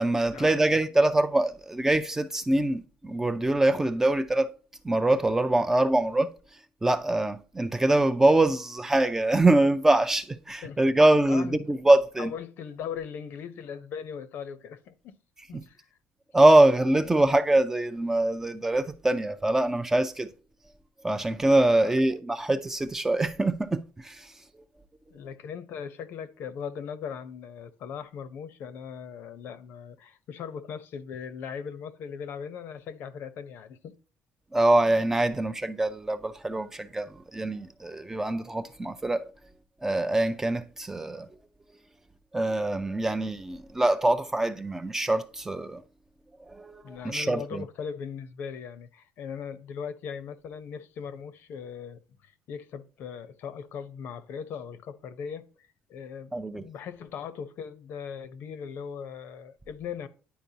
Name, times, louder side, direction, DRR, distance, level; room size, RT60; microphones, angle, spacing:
voice 1, 0.0-4.5 4.8-6.3 6.8-12.3 15.5-15.6 16.3-20.3 21.0-24.3 34.5-39.2 39.8-41.3 42.3-45.8 46.5-47.6 56.3-56.6, right 2 dB, 10° right, 0.4 m, -24 dB
voice 2, 12.2-15.2 15.5-15.9 21.8-21.9 25.1-33.9 46.8-55.5 55.9-60.1, left 7 dB, 60° left, 0.7 m, -39 dB
10.5 x 4.4 x 2.8 m
cardioid pair, 140°, 4 cm